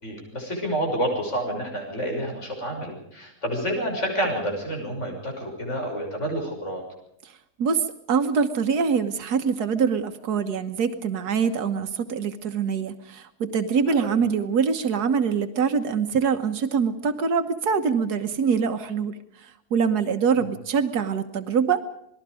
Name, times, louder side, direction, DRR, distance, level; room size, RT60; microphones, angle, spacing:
voice 1, 0.0-6.8 13.9-14.2 20.4-20.5, right 1 dB, 50° left, 2 dB, 6.7 m, -29 dB
voice 2, 7.6-21.8, right 6 dB, 90° right, 8 dB, 1.7 m, -24 dB
27.5 x 20.0 x 5.0 m, 0.76 s
omnidirectional pair, 1.6 m